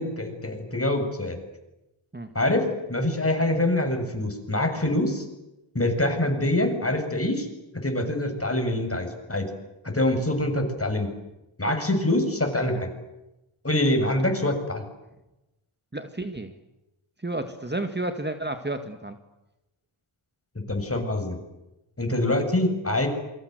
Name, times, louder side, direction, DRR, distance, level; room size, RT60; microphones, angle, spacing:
voice 1, 0.0-1.4 2.3-5.3 5.7-7.5 7.8-9.5 9.8-11.1 11.6-12.9 13.6-14.8 20.7-21.4 22.0-23.1, left 1 dB, 25° left, 5 dB, 7.5 m, -25 dB
voice 2, 15.9-16.5 17.2-19.2, right 2 dB, 20° right, 7 dB, 2.1 m, -31 dB
28.5 x 24.5 x 8.1 m, 0.95 s
wide cardioid pair, 75°, 50 cm